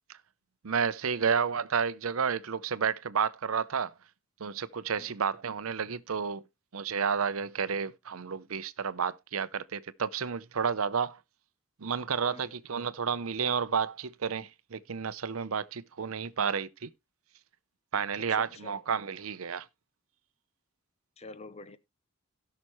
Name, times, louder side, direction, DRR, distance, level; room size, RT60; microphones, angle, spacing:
voice 1, 0.6-3.9 4.4-6.4 6.7-11.2 11.8-16.9 17.9-19.7, right 6 dB, 85° right, 0.7 m, -31 dB
voice 2, 18.2-18.8 21.2-21.8, left 3 dB, 30° left, 0.7 m, -47 dB
17.0 x 5.9 x 3.1 m
head